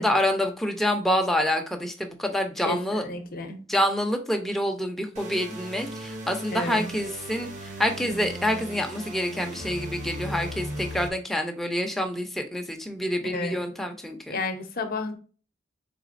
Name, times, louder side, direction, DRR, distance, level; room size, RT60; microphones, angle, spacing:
voice 1, 0.0-3.0 3.7-14.4, equal, ahead, 0.6 m, -27 dB
voice 2, 2.6-3.6 6.5-6.9 13.2-13.6 14.3-15.2, left 2 dB, 50° left, 0.7 m, -31 dB
sound 1, 5.2-11.1, equal, 40° right, 0.8 m, -37 dB
4.0 x 3.6 x 2.5 m
head